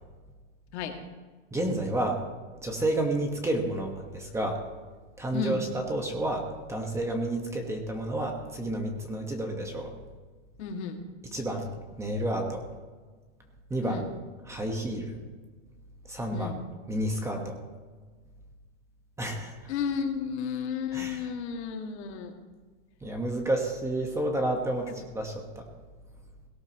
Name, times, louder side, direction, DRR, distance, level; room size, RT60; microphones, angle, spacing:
voice 1, 1.5-2.2 2.6-4.6 5.2-9.9 11.3-11.7 12.0-12.6 13.7-14.0 14.4-15.2 16.1-16.5 16.9-17.6 19.2-19.5 20.9-21.3 23.0-25.6, right 1 dB, 10° right, 2 dB, 1.4 m, -30 dB
voice 2, 10.6-11.0 13.8-14.1 16.3-16.6 19.7-22.3 24.9-25.0, left 6 dB, 65° left, 3 dB, 2.3 m, -32 dB
17.5 x 17.5 x 3.0 m, 1.4 s
supercardioid pair, 160°, 35 cm